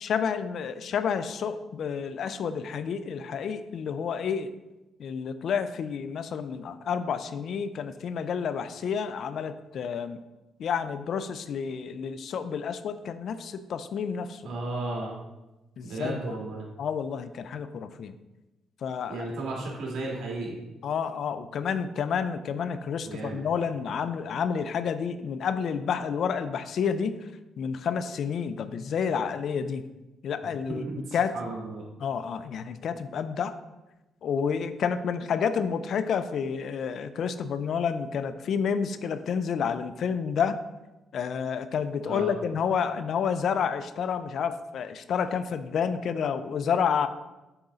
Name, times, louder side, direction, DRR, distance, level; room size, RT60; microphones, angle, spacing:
voice 1, 0.0-4.5 5.0-10.2 10.6-14.4 15.8-16.2 16.8-18.2 18.8-19.3 20.8-27.2 27.6-29.8 30.2-30.8 31.1-31.3 32.0-33.5 34.2-40.6 41.1-47.1, left 7 dB, 65° left, 12 dB, 0.4 m, -29 dB
voice 2, 14.4-15.1 15.8-16.7 19.1-20.6 23.0-23.4 30.4-31.8 42.1-42.3, right 2 dB, 75° right, -3 dB, 2.1 m, -34 dB
7.0 x 3.7 x 3.9 m, 1.0 s
cardioid pair, 90°, 0 cm